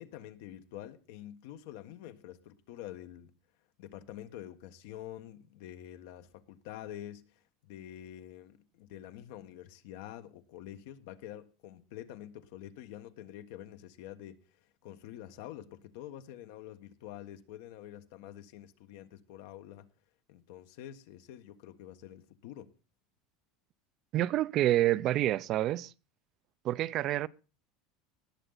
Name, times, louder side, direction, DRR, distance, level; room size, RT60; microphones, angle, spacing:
voice 1, 0.0-3.3 3.8-19.9 20.3-22.7, left 12 dB, 70° left, 1.4 m, -47 dB
voice 2, 24.1-25.9 26.6-27.3, right 14 dB, 40° right, 0.5 m, -28 dB
18.5 x 7.8 x 3.9 m
supercardioid pair, 145°, 0 cm